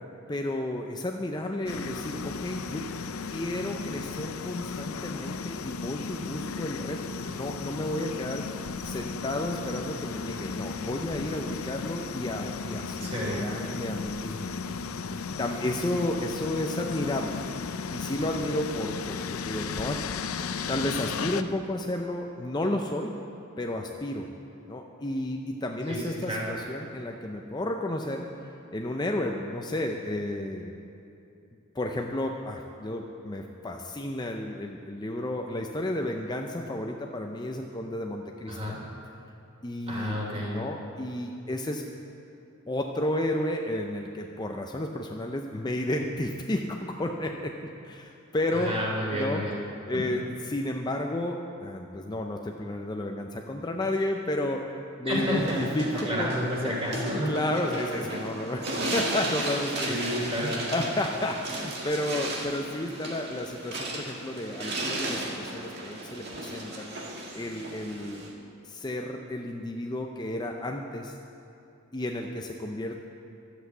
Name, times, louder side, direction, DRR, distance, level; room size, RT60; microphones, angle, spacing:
voice 1, 0.3-2.9 3.3-8.5 8.8-14.5 15.4-17.4 17.9-20.0 20.7-23.1 23.6-24.3 24.7-28.3 28.7-30.7 31.7-38.7 39.6-40.2 40.5-41.8 42.7-48.8 49.1-49.4 49.9-56.7 57.3-60.0 60.4-66.9 67.3-68.2 68.6-71.2 71.9-73.1, left 1 dB, 20° left, 2 dB, 0.5 m, -32 dB
sound 1, 1.7-21.4, left 5 dB, 85° left, 0.5 m, -35 dB
voice 2, 13.0-13.5 25.9-26.5 38.5-38.8 39.9-40.6 48.5-49.6 49.9-50.1 55.1-55.6 56.0-57.3 59.8-60.5, equal, 30° right, -4 dB, 3.2 m, -30 dB
sound 2, 55.3-68.3, right 1 dB, 50° right, 1.8 m, -35 dB
12.5 x 8.1 x 7.9 m, 2.8 s
head